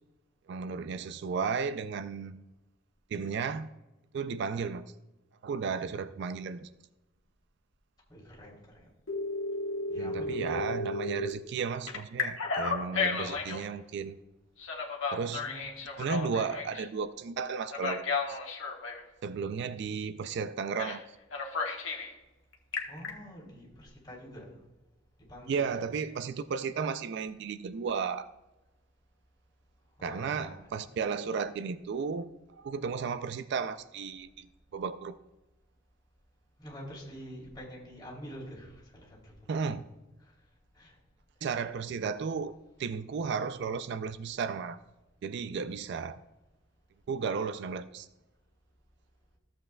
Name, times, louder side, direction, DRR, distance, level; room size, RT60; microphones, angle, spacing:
voice 1, 0.5-2.4 3.1-3.7 4.1-4.9 5.4-6.7 10.0-14.2 15.1-15.5 16.0-18.4 19.2-21.0 25.5-28.3 30.0-35.2 39.5-39.9 41.4-42.5 42.8-44.8 45.2-46.2 47.1-48.1, right 5 dB, 55° right, 12 dB, 0.3 m, -34 dB
voice 2, 8.1-8.9 9.9-10.8 13.1-13.8 15.2-15.7 22.9-24.5 25.3-25.7 30.0-31.1 36.6-39.7 40.2-40.3 40.7-41.0 41.4-41.5, equal, 20° left, -5 dB, 3.0 m, -46 dB
Telephone, 9.1-11.3 11.9-13.6 14.6-16.9 17.7-19.0 20.8-21.0 21.3-22.1 22.5-23.1, left 3 dB, 70° left, 1.3 m, -33 dB
14.5 x 7.7 x 2.2 m, 1.0 s
head